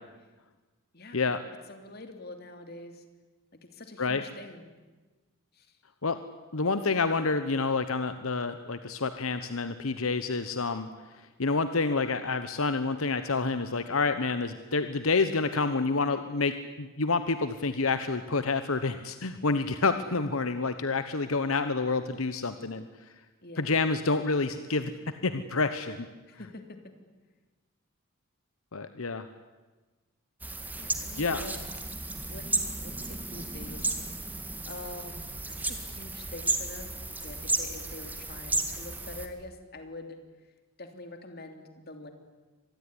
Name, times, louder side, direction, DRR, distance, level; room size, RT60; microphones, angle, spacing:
voice 1, 0.9-1.4 1.7-3.0 3.5-4.7 5.5-5.8 23.4-23.7 26.3-26.9 30.8-31.7 32.3-33.9 34.7-40.2 40.8-42.1, left 2 dB, 45° left, 7 dB, 3.0 m, -45 dB
voice 2, 6.5-10.9 11.4-22.9 23.6-26.1 28.7-29.3 31.2-31.4, left 3 dB, 80° left, 11 dB, 1.1 m, -28 dB
sound 1, 30.4-39.3, right 2 dB, 10° right, 1.8 m, -34 dB
25.5 x 20.0 x 9.9 m, 1.3 s
head